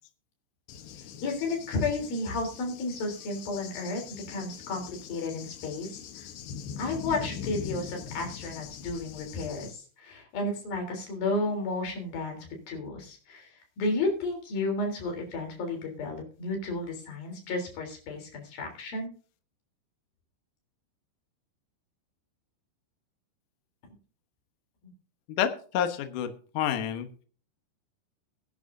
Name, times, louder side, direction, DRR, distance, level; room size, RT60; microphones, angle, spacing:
Cricket / Thunder, 0.7-9.7, left 7 dB, 70° left, 2.8 m, -42 dB
voice 1, 1.2-6.3 6.8-19.1 24.8-24.9, left 2 dB, 50° left, 2 dB, 5.1 m, -32 dB
voice 2, 25.3-27.1, left 9 dB, 85° left, 7 dB, 1.8 m, -29 dB
20.5 x 10.5 x 2.7 m, 0.41 s
omnidirectional pair, 5.7 m